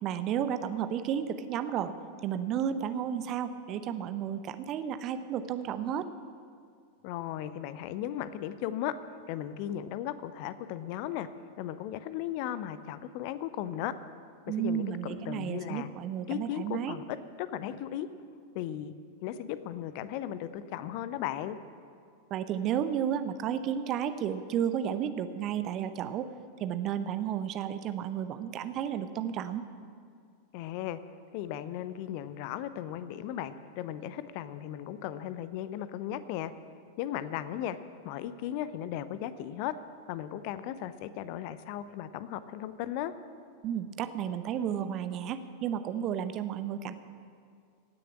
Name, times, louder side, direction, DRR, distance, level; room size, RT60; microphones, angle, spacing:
voice 1, 0.0-1.9 2.2-6.1 14.5-17.0 22.3-26.3 26.6-29.6 43.6-46.9, right 9 dB, 35° right, 11 dB, 0.7 m, -32 dB
voice 2, 7.0-8.9 9.3-11.3 11.6-13.9 14.6-15.9 16.3-18.1 18.5-18.9 19.2-21.6 30.5-31.0 31.3-36.5 37.0-37.8 38.0-39.7 40.1-43.1, left 11 dB, 45° left, 14 dB, 0.6 m, -36 dB
16.5 x 6.8 x 8.6 m, 2.2 s
figure-of-eight pair, 90°, 0 cm